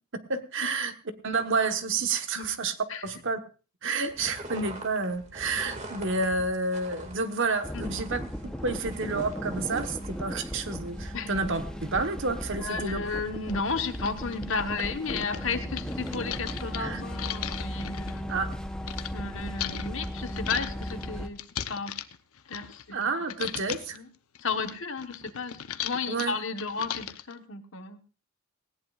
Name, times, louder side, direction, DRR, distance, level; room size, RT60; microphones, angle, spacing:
voice 1, 0.3-0.9 1.2-2.7 3.0-3.4 3.8-8.2 8.6-13.0 16.8-17.0 18.3-18.5 22.9-24.0 26.1-26.4, right 3 dB, 55° right, 7 dB, 1.3 m, -29 dB
sound 1, 4.1-14.4, right 1 dB, 30° right, 2.2 m, -46 dB
sound 2, 7.6-21.3, equal, 5° left, 0.9 m, -36 dB
voice 2, 12.6-18.3 19.1-21.4 21.7-21.9 22.5-23.0 23.9-24.0 24.4-28.0, left 4 dB, 60° left, 7 dB, 1.3 m, -33 dB
sound 3, 12.8-12.9 13.5-13.6 13.9-19.1 19.6-23.0 23.3-24.0 24.3-27.3, left 10 dB, 75° left, 0.8 m, -37 dB
18.5 x 17.0 x 2.5 m, 0.35 s
head